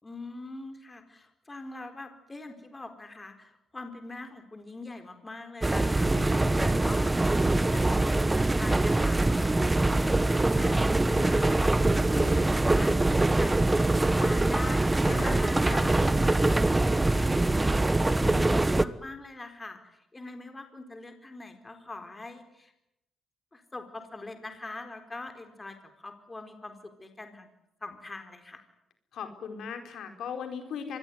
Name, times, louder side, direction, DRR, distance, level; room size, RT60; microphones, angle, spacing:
voice 1, 0.0-10.2 10.5-22.7 23.5-27.5 27.8-28.6, left 2 dB, 20° left, 7 dB, 4.4 m, -43 dB
sound 1, 5.6-18.8, right 2 dB, 15° right, 1.2 m, -24 dB
voice 2, 6.0-6.9 15.0-16.2 18.2-18.6 29.1-31.0, left 6 dB, 70° left, 6 dB, 4.7 m, -39 dB
25.5 x 21.0 x 9.7 m, 0.82 s
cardioid pair, 90°, 0 cm